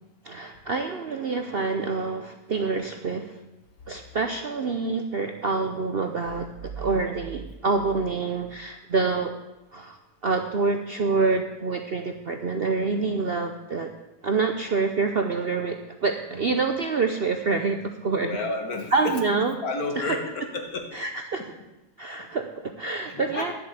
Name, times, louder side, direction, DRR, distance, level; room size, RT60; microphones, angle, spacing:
voice 1, 0.2-3.4 3.9-9.3 9.7-10.0 10.2-13.9 14.2-18.4 18.9-19.5 20.0-20.2 20.9-21.4 22.0-23.5, right 4 dB, 50° right, 5 dB, 0.7 m, -27 dB
sound 1, 6.2-9.1, right 6 dB, 70° right, 1.3 m, -42 dB
voice 2, 18.2-19.2 19.6-20.9 23.1-23.5, left 3 dB, 60° left, 4 dB, 2.0 m, -31 dB
11.0 x 7.6 x 8.1 m, 1.0 s
omnidirectional pair, 1.8 m